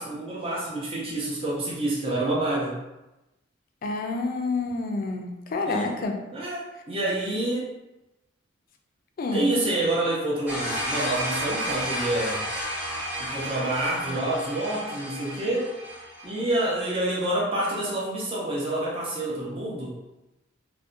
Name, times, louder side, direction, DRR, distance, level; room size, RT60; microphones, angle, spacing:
voice 1, 0.0-2.8 5.7-6.0 6.3-7.7 9.3-12.4 13.2-15.7 16.2-20.0, right 1 dB, 30° right, -5 dB, 0.5 m, -28 dB
voice 2, 3.8-6.2 9.2-9.5, left 3 dB, 45° left, 3 dB, 0.3 m, -28 dB
sound 1, 10.5-16.4, equal, 10° right, 0.8 m, -32 dB
2.6 x 2.1 x 2.4 m, 0.99 s
head